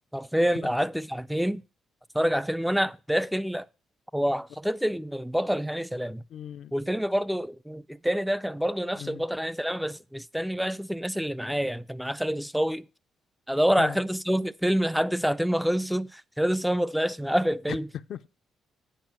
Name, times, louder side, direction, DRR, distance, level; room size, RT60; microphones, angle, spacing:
voice 1, 0.1-1.6 2.1-3.7 4.1-6.2 6.7-12.9 13.5-17.9, equal, ahead, 0.3 m, -27 dB
voice 2, 6.3-6.7 9.0-9.2 13.8-14.0 17.7-18.3, left 9 dB, 70° left, 0.4 m, -37 dB
9.1 x 5.0 x 5.9 m
cardioid pair, 90°, 0 cm